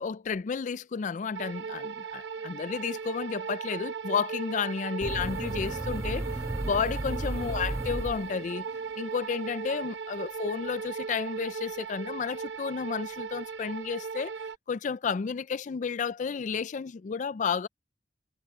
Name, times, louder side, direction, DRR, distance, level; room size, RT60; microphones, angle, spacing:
voice 1, 0.0-6.3 6.6-8.7 9.0-14.3 14.7-17.7, left 6 dB, 45° left, 0.4 m, -32 dB
sound 1, 1.3-14.6, right 6 dB, 80° right, 0.9 m, -38 dB
sound 2, 5.0-8.8, right 1 dB, 15° right, 0.5 m, -34 dB
head